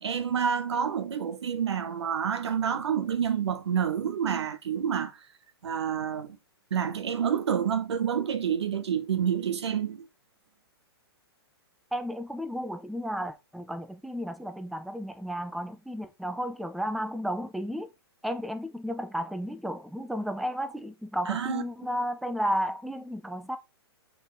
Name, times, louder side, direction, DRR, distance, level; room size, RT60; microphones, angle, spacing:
voice 1, 0.0-5.2 5.6-6.4 6.7-10.1 21.3-21.6, right 8 dB, 85° right, 1.1 m, -28 dB
voice 2, 11.9-17.9 18.2-23.6, equal, ahead, 0.4 m, -33 dB
6.5 x 4.4 x 4.0 m
hypercardioid pair, 150°, 14 cm